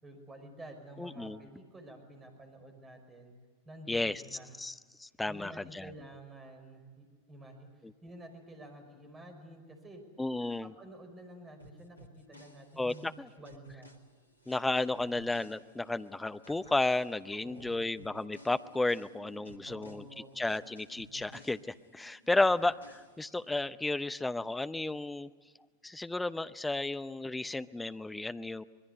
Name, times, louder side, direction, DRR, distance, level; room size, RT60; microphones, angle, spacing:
voice 1, 0.0-3.3 3.7-4.5 5.3-7.7 8.0-10.0 10.6-13.0 13.4-14.0 17.3-17.9 19.7-20.7, right 1 dB, 15° right, 4 dB, 5.5 m, -50 dB
voice 2, 1.0-1.4 3.9-4.2 4.6-5.9 7.8-7.9 10.2-10.7 12.8-13.3 14.5-20.0 20.4-25.3 25.8-28.6, left 2 dB, 5° left, 13 dB, 0.8 m, -33 dB
sound 1, 11.6-16.1 16.4-22.1 22.4-23.6, equal, 80° left, 2.2 m, -56 dB
sound 2, 13.9-25.6, right 3 dB, 65° right, 2.3 m, -62 dB
25.0 x 21.5 x 8.1 m, 1.5 s
figure-of-eight pair, 90°, 0 cm